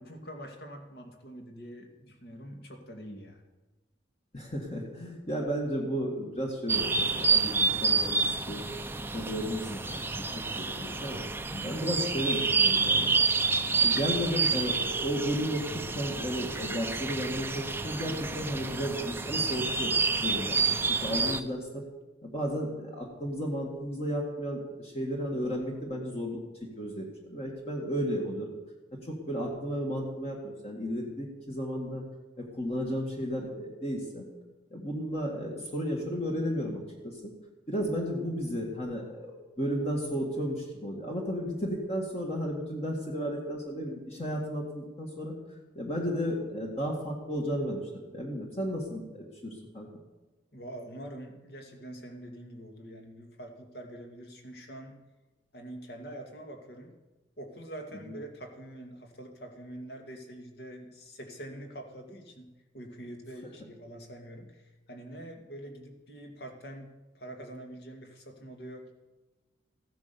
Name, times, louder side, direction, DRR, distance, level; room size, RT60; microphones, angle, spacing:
voice 1, 0.0-3.4 11.5-11.8 50.5-55.0 55.5-56.9 57.4-68.9, right 1 dB, 55° left, 3 dB, 2.3 m, -45 dB
voice 2, 4.3-8.6 9.0-11.2 11.6-13.1 13.7-19.9 20.2-21.8 22.2-26.4 26.8-28.5 29.0-32.0 32.4-34.3 34.7-37.2 37.7-45.4 45.8-49.9 58.1-58.2, equal, 35° left, -1 dB, 2.1 m, -33 dB
sound 1, 6.7-21.4, right 4 dB, 10° right, 0.6 m, -29 dB
15.0 x 10.5 x 7.0 m, 1.1 s
head